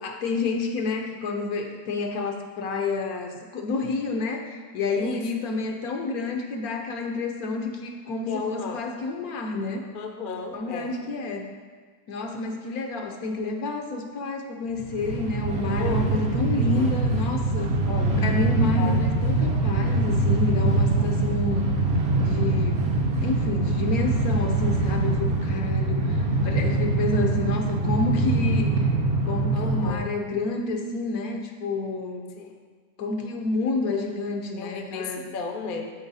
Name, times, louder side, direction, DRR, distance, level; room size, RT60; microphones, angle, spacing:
voice 1, 0.0-9.8 10.5-11.5 12.1-17.8 18.2-21.7 22.2-28.9 29.2-32.3 33.0-35.2, left 3 dB, 70° left, 3 dB, 1.2 m, -29 dB
voice 2, 5.0-5.3 8.3-8.8 9.9-10.9 15.6-16.2 16.6-16.9 17.9-18.2 18.8-19.0 21.0-21.1 29.5-30.1 32.3-32.5 34.6-35.9, left 4 dB, 45° left, 3 dB, 0.7 m, -34 dB
Train, 14.7-29.9, right 2 dB, 45° right, 1.0 m, -23 dB
13.0 x 4.3 x 4.1 m, 1.5 s
omnidirectional pair, 1.7 m